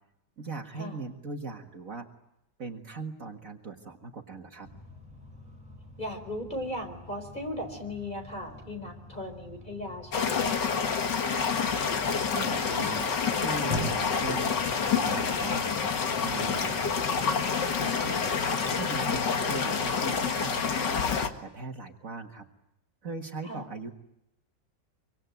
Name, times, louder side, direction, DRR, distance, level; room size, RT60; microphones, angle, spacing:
voice 1, 0.4-2.1 2.6-4.7 12.1-13.1 13.4-15.7 16.2-16.8 17.2-17.5 17.8-18.3 18.8-21.1 21.4-22.5 23.0-23.9, right 4 dB, 50° right, 3 dB, 2.1 m, -40 dB
sound 1, 4.6-17.0, left 1 dB, 5° right, 7.8 m, -44 dB
voice 2, 6.0-10.8 23.4-23.6, left 1 dB, 25° left, 5 dB, 4.4 m, -37 dB
sound 2, 10.1-21.3, left 6 dB, 75° left, 2.3 m, -28 dB
25.0 x 24.5 x 9.3 m, 0.81 s
omnidirectional pair, 1.9 m